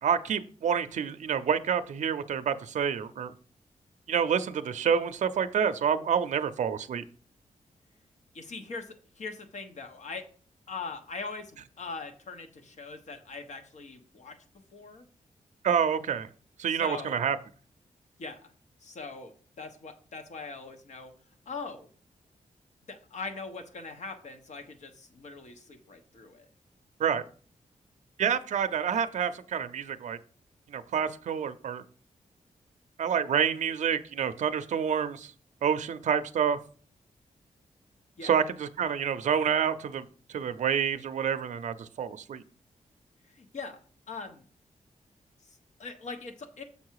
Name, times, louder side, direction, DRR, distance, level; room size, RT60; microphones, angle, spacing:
voice 1, 0.0-3.3 4.1-7.0 15.6-16.3 16.6-17.4 27.0-27.2 28.2-30.2 30.7-31.8 33.0-35.3 35.6-36.6 38.2-40.1 40.3-42.4, right 7 dB, 65° right, 10 dB, 0.5 m, -28 dB
voice 2, 8.3-10.2 10.7-14.4 14.7-15.0 16.7-17.2 18.2-18.5 18.8-21.1 21.5-21.9 22.9-26.5 38.2-38.3 43.3-43.8 44.1-44.4 45.5-46.6, left 4 dB, 65° left, 6 dB, 1.2 m, -41 dB
7.1 x 4.7 x 4.7 m, 0.43 s
wide cardioid pair, 160°, 13 cm